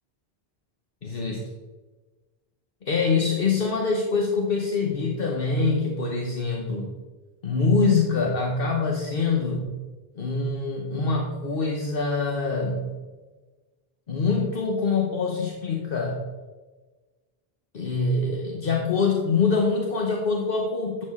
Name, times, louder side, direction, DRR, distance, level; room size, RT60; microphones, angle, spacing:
voice 1, 1.0-1.5 2.8-7.0 7.4-9.7 10.1-13.0 14.1-16.2 17.7-21.0, left 4 dB, 60° left, 0 dB, 1.2 m, -24 dB
10.5 x 6.5 x 3.6 m, 1.3 s
omnidirectional pair, 1.0 m